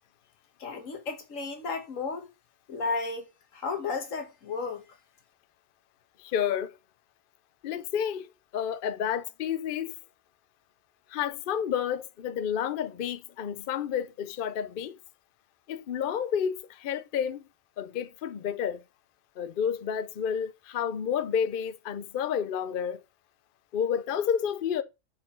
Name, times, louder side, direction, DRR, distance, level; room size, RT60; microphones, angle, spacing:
voice 1, 0.6-2.3 2.7-3.3 3.5-4.8, left 4 dB, 85° left, 1.6 m, -33 dB
voice 2, 6.2-6.8 7.6-10.0 11.1-15.0 15.7-17.4 17.8-18.8 19.4-23.0 23.7-24.8, left 8 dB, 55° left, 0.6 m, -30 dB
6.1 x 4.5 x 4.3 m
omnidirectional pair, 1.3 m